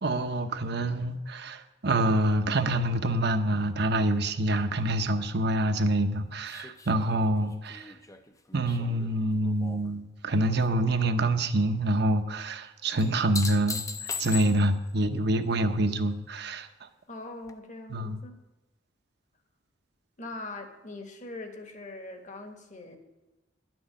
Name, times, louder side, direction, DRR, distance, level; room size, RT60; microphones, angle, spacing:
voice 1, 0.0-7.8 8.5-13.8 14.2-16.7 17.9-18.2, right 1 dB, 55° right, 8 dB, 0.9 m, -26 dB
sound 1, 6.5-9.9 10.3-10.9 13.0-14.9 17.5-17.6, left 5 dB, 15° left, 0.6 m, -39 dB
voice 2, 17.1-18.3 20.2-23.0, left 2 dB, 40° left, 5 dB, 1.4 m, -41 dB
11.0 x 6.2 x 8.7 m, 1.1 s
head